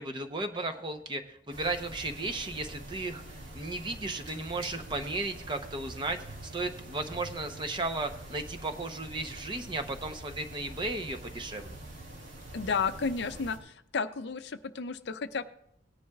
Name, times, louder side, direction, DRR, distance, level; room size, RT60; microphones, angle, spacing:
voice 1, 0.0-3.2 3.5-11.8, right 2 dB, 25° right, 6 dB, 0.8 m, -35 dB
sound 1, 1.5-13.6, right 1 dB, 85° right, 2.6 m, -45 dB
voice 2, 12.5-15.4, left 5 dB, 60° left, 11 dB, 0.5 m, -32 dB
18.0 x 10.5 x 2.4 m, 0.73 s
head